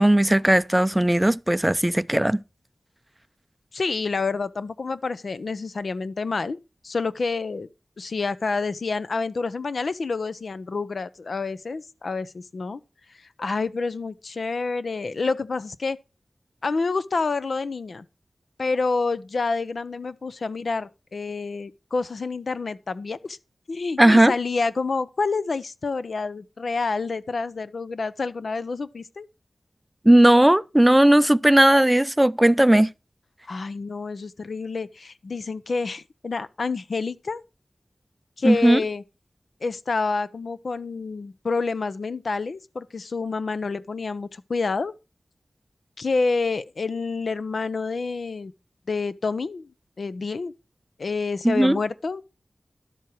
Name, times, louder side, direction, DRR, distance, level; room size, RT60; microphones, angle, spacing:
voice 1, 0.0-2.4 24.0-24.3 30.0-32.9 38.4-38.8 51.4-51.8, right 1 dB, 15° right, 0.5 m, -17 dB
voice 2, 3.7-6.6 6.8-7.7 8.0-12.8 13.4-16.0 16.6-18.1 18.6-23.4 23.7-29.3 33.5-37.4 38.4-39.0 39.6-44.9 46.0-48.5 48.9-49.7 50.0-50.5 51.0-52.2, left 4 dB, 75° left, 0.6 m, -28 dB
11.5 x 7.7 x 4.5 m
wide cardioid pair, 65°, 0 cm